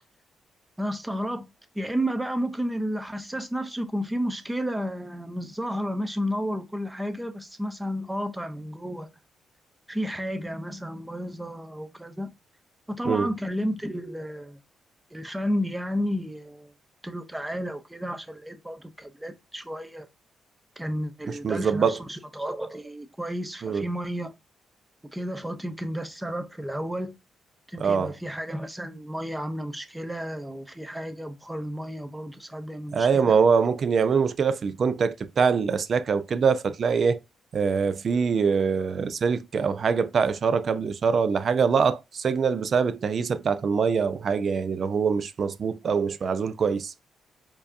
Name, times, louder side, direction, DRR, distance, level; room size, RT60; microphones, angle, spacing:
voice 1, 0.8-9.1 9.9-12.3 12.9-14.6 15.1-16.7 17.0-20.1 20.8-24.3 25.1-27.1 27.7-33.4, equal, 10° right, 0.7 m, -32 dB
voice 2, 21.3-22.0 23.6-23.8 27.8-28.1 32.9-37.2 37.5-46.9, right 5 dB, 50° right, 0.5 m, -24 dB
4.7 x 2.7 x 2.5 m
cardioid pair, 95°, 0 cm